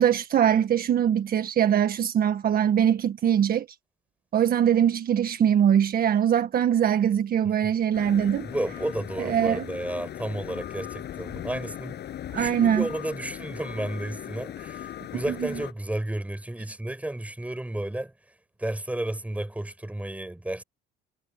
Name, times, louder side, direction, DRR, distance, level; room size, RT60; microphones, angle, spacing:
voice 1, 0.0-3.7 4.3-8.5 9.2-9.6 12.3-12.8, right 9 dB, 45° right, 1.8 m, -22 dB
sound 1, 7.9-15.7, left 11 dB, 55° left, 8.0 m, -38 dB
voice 2, 8.4-12.0 12.4-20.6, right 1 dB, 5° right, 5.7 m, -32 dB
supercardioid pair, 90°, 21 cm